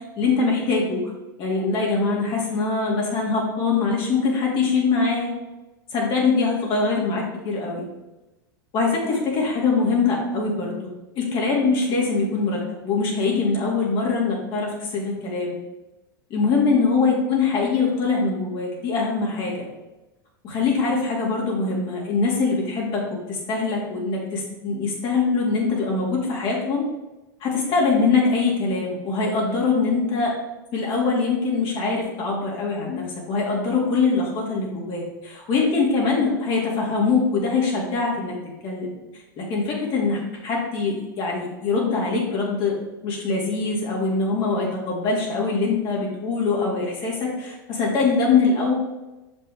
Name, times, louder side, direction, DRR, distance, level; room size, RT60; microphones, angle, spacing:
voice 1, 0.2-1.1 1.4-5.3 5.9-7.8 8.7-10.7 11.2-15.6 16.3-19.7 20.4-26.8 27.4-30.3 30.7-38.3 38.6-38.9 39.4-42.8 43.0-48.7, left 4 dB, 45° left, -3 dB, 2.2 m, -23 dB
6.3 x 5.3 x 3.6 m, 1.0 s
hypercardioid pair, 95°, 12 cm